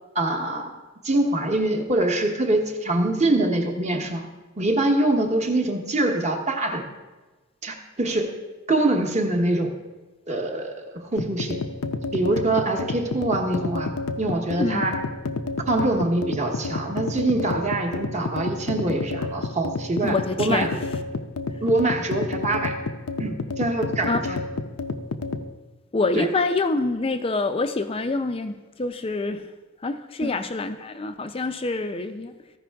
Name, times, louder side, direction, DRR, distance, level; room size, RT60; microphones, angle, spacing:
voice 1, 0.1-0.8 1.0-4.3 4.6-6.9 7.6-8.3 8.7-9.7 10.3-11.6 12.1-15.0 15.7-20.8 21.6-22.7 23.2-24.4 26.1-26.3 30.2-30.3, right 2 dB, 30° right, 2 dB, 0.9 m, -24 dB
sound 1, 11.2-25.5, left 3 dB, 75° left, 0.6 m, -30 dB
voice 2, 20.0-20.7 24.1-24.2 25.9-29.4 29.8-32.3, left 3 dB, 25° left, 8 dB, 0.4 m, -26 dB
14.5 x 5.4 x 3.4 m, 1.2 s
head